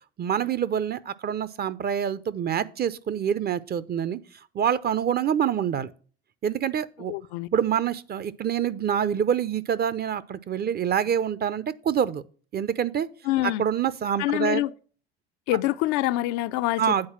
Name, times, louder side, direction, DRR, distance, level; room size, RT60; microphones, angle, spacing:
voice 1, 0.2-4.2 4.5-5.9 6.4-7.1 7.5-12.2 12.5-13.1 13.4-14.6 16.8-17.1, right 8 dB, 30° right, 0.7 m, -26 dB
voice 2, 7.1-7.5 13.2-13.7 14.2-14.7 15.5-17.1, left 16 dB, 65° left, 0.5 m, -26 dB
8.7 x 4.2 x 7.1 m
hypercardioid pair, 75°, 30 cm